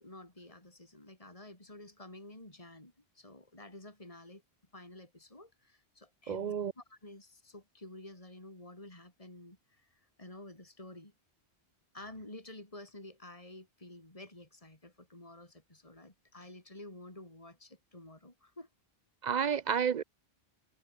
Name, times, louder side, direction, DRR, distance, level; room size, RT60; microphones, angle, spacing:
voice 1, 0.0-4.4 4.7-11.1 11.9-18.7, left 1 dB, 30° left, 4.5 m, -51 dB
voice 2, 6.3-6.7 19.2-20.0, right 7 dB, 55° right, 0.5 m, -30 dB
omnidirectional pair, 1.1 m